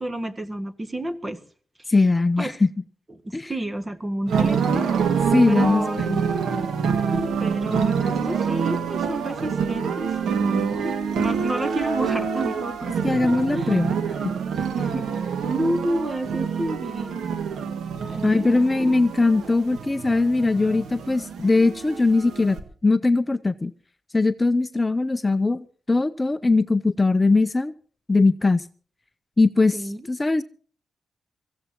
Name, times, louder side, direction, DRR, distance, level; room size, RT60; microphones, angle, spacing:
voice 1, 0.0-1.4 1.9-2.0 2.4-2.5 3.2-5.1 5.5-6.0 7.4-13.2 13.5-13.8 14.8-15.1 15.4-17.2 18.1-18.5 18.8-18.9 29.7-30.1, right 1 dB, 20° right, 1.7 m, -30 dB
voice 2, 1.9-2.7 3.3-3.5 5.3-6.2 13.0-13.9 18.2-22.6 22.8-23.7 24.1-27.7 28.1-28.7 29.4-30.4, left 3 dB, 20° left, 0.6 m, -20 dB
sound 1, 4.3-22.6, right 6 dB, 80° right, 1.9 m, -26 dB
24.0 x 15.5 x 2.9 m
cardioid pair, 75°, 0 cm